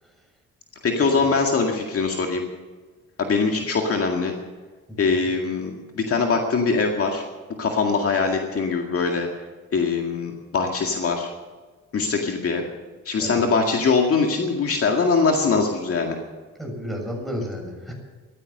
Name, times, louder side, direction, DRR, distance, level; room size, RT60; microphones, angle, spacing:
voice 1, 0.8-2.4 3.2-4.3 5.0-7.3 7.6-9.3 9.7-11.3 11.9-12.6 13.1-16.2, left 4 dB, 50° left, 2 dB, 2.1 m, -22 dB
voice 2, 16.6-17.9, equal, ahead, 1 dB, 6.9 m, -32 dB
15.0 x 13.5 x 6.7 m, 1.4 s
cardioid pair, 90°, 30 cm